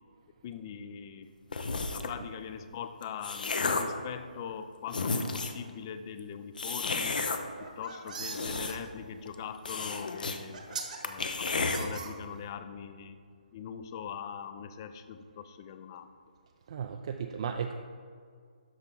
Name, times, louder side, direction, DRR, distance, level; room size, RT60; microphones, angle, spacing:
voice 1, 0.4-7.3 7.8-10.6 11.0-13.2 13.5-16.1, left 8 dB, 30° left, 11 dB, 0.4 m, -42 dB
sound 1, 1.5-2.2 2.9-4.0 4.6-4.7 4.9-5.6 6.6-7.4 8.1-9.0 9.3-9.4 9.7-10.4 10.7-10.8 11.0-11.8, left 4 dB, 70° left, 0.8 m, -32 dB
sound 2, 7.6-8.8 9.9-10.0 10.5-11.0 11.5-12.5, right 5 dB, 60° right, 1.3 m, -41 dB
voice 2, 16.7-17.7, right 7 dB, 40° right, 5 dB, 0.4 m, -35 dB
12.5 x 4.4 x 3.8 m, 2.1 s
hypercardioid pair, 155°, 5 cm